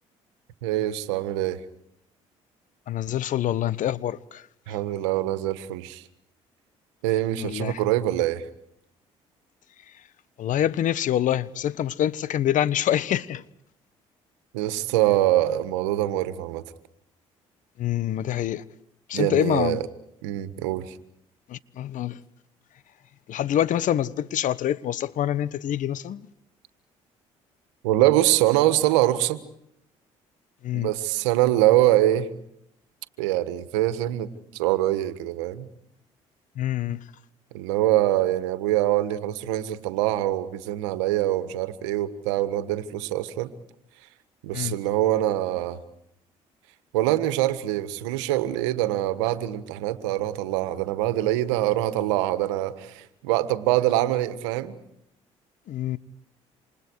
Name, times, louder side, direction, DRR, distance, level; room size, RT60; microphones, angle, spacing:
voice 1, 0.6-1.6 4.7-6.0 7.0-8.4 14.5-16.6 19.1-19.9 20.2-21.0 27.8-29.4 30.7-32.3 33.2-35.7 37.5-43.5 44.4-45.8 46.9-54.8, right 14 dB, 85° right, 1.6 m, -24 dB
voice 2, 2.9-4.4 7.4-7.8 10.4-13.4 17.8-18.6 19.1-19.8 21.5-22.2 23.3-26.3 30.6-30.9 36.6-37.0 44.5-44.8 55.7-56.0, left 11 dB, 60° left, 1.3 m, -26 dB
28.5 x 27.0 x 4.8 m
hypercardioid pair, 60°, 15 cm